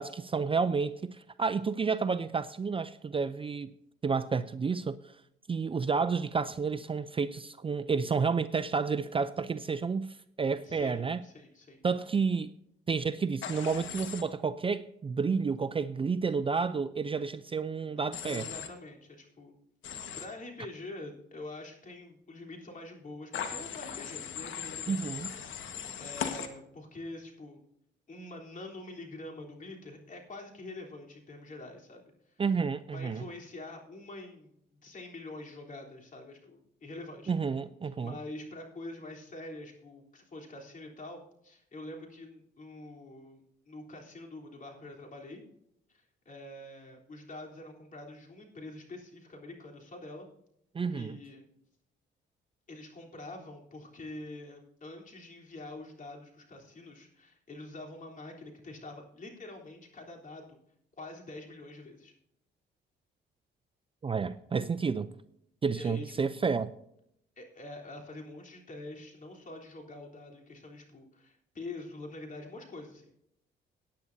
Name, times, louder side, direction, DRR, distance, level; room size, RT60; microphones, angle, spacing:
voice 1, 0.0-3.7 4.0-5.0 5.5-11.2 11.8-12.5 12.9-18.5 24.9-25.3 32.4-33.3 37.3-38.2 50.7-51.2 64.0-65.1 65.6-66.7, right 5 dB, 25° right, 0.5 m, -30 dB
voice 2, 10.6-11.8 18.2-19.5 19.9-25.3 25.6-27.6 28.1-32.0 32.9-37.3 38.0-45.5 45.9-50.3 50.9-51.4 52.7-60.6 61.0-62.1 65.8-66.3 67.4-73.1, left 2 dB, 40° left, 3.5 m, -46 dB
Human voice / Train, 13.4-14.2 18.1-18.7 19.8-20.2 23.3-26.5, left 8 dB, 75° left, 1.5 m, -38 dB
18.0 x 9.6 x 2.7 m
cardioid pair, 90°, 20 cm